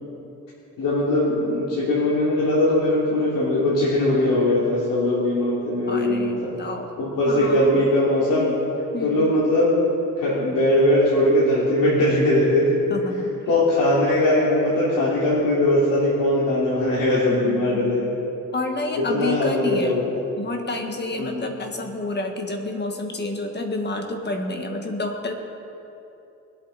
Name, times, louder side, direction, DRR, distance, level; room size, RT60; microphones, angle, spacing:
voice 1, 0.8-6.5 7.0-8.5 9.0-9.7 10.2-12.8 13.5-18.1 19.1-20.1 21.2-21.4, left 1 dB, 85° left, -9 dB, 3.0 m, -20 dB
voice 2, 5.9-6.9 7.2-7.9 8.9-9.3 12.9-13.3 17.3-18.1 18.5-20.0 20.4-25.3, left 2 dB, 30° left, 3 dB, 1.6 m, -29 dB
21.0 x 8.4 x 4.2 m, 2.9 s
cardioid pair, 110°, 32 cm